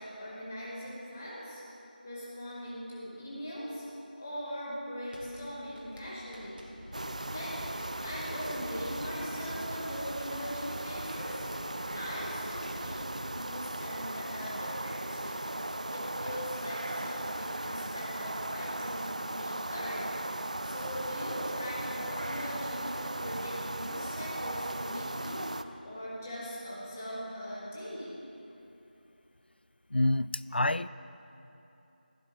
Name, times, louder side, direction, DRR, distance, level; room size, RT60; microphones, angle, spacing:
voice 1, 0.0-1.6 2.0-3.8 4.2-6.7 7.3-7.7 8.0-11.5 11.9-28.2, equal, 15° left, -8 dB, 1.2 m, -41 dB
sound 1, 4.9-10.1, equal, 65° right, 2.4 m, -50 dB
sound 2, 6.7-13.3, equal, 20° right, 2.1 m, -46 dB
sound 3, 6.9-25.6, right 1 dB, 45° right, 0.4 m, -37 dB
voice 2, 29.9-30.9, left 1 dB, 80° left, 16 dB, 0.3 m, -27 dB
16.0 x 11.5 x 4.0 m, 2.9 s
figure-of-eight pair, 170°, 5 cm